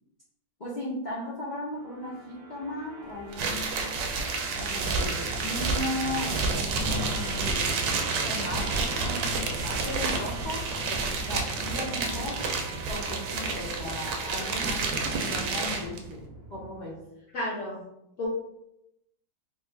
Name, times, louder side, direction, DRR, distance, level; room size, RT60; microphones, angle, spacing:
voice 1, 0.6-4.1 4.5-7.8 8.2-12.4 12.9-17.1, left 1 dB, 80° left, -8 dB, 0.4 m, -37 dB
Musical instrument, 1.7-17.1, right 2 dB, 45° right, 0.8 m, -39 dB
sound 1, 3.3-16.0, right 4 dB, 75° right, 1.1 m, -30 dB
voice 2, 15.4-15.8 17.3-17.8 18.2-18.3, left 1 dB, 65° left, -5 dB, 0.7 m, -34 dB
3.3 x 2.3 x 3.2 m, 0.83 s
omnidirectional pair, 2.1 m